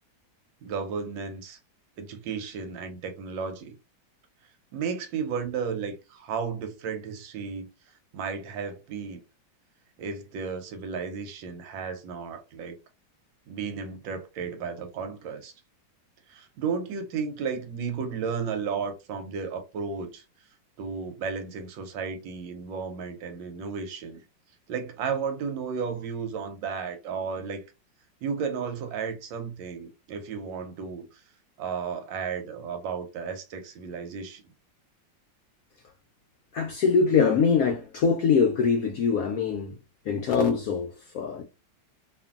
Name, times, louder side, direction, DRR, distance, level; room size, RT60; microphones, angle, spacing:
voice 1, 0.6-1.6 2.0-3.8 4.7-7.7 8.1-9.2 10.0-12.8 13.5-15.5 16.3-20.2 20.8-24.2 24.7-27.6 28.2-31.1 31.6-34.4, right 6 dB, 85° right, 1.4 m, -33 dB
voice 2, 36.5-39.8 40.1-41.4, left 5 dB, 80° left, 0.7 m, -23 dB
2.9 x 2.5 x 2.3 m
omnidirectional pair, 2.0 m